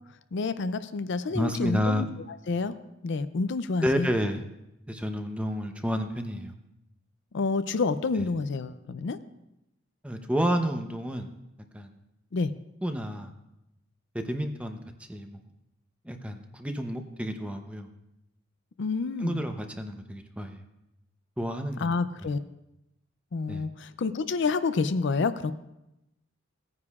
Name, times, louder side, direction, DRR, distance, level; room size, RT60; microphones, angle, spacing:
voice 1, 0.3-2.1 2.5-2.8 3.0-4.1 7.3-9.2 12.3-12.5 18.8-19.5 21.8-22.4 23.3-25.5, left 4 dB, 65° left, 12 dB, 0.4 m, -28 dB
voice 2, 1.3-2.1 3.8-4.4 4.9-6.5 8.2-8.3 10.0-11.3 11.7-11.9 12.8-13.3 14.1-14.8 15.1-15.4 16.0-17.9 19.2-20.6 21.4-22.0 23.5-23.6, equal, 5° right, 5 dB, 0.7 m, -30 dB
18.0 x 9.6 x 2.4 m, 0.89 s
head